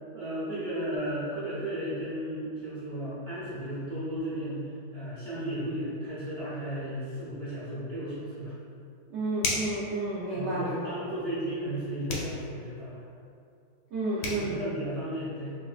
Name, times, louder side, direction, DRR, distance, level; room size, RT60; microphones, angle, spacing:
voice 1, 0.1-8.5 10.3-13.0 14.2-15.6, right 1 dB, 45° right, -11 dB, 0.9 m, -34 dB
voice 2, 9.1-10.9 13.9-14.6, right 2 dB, 80° right, -9 dB, 0.6 m, -31 dB
sound 1, 9.4-9.8 12.1-12.4 13.9-14.0 14.2-14.5, left 3 dB, 75° left, 1.2 m, -31 dB
4.8 x 2.1 x 2.4 m, 2.4 s
omnidirectional pair, 1.8 m